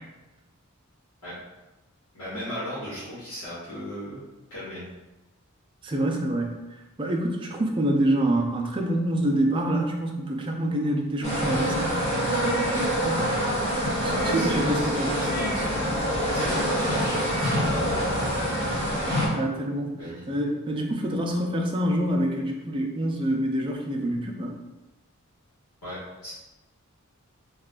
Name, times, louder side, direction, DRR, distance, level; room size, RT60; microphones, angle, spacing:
voice 1, 2.1-4.2 4.5-4.8 13.1-13.6 14.0-15.8 16.3-18.4 20.0-20.2 25.8-26.3, equal, 75° left, -11 dB, 1.3 m, -35 dB
voice 2, 5.8-6.5 7.0-12.0 13.0-13.2 14.0-15.2 19.3-19.9 20.3-24.6, right 1 dB, 25° right, 1 dB, 0.4 m, -26 dB
sound 1, 11.2-19.3, equal, 30° left, 1.3 m, -26 dB
3.2 x 2.4 x 3.7 m, 1.1 s
head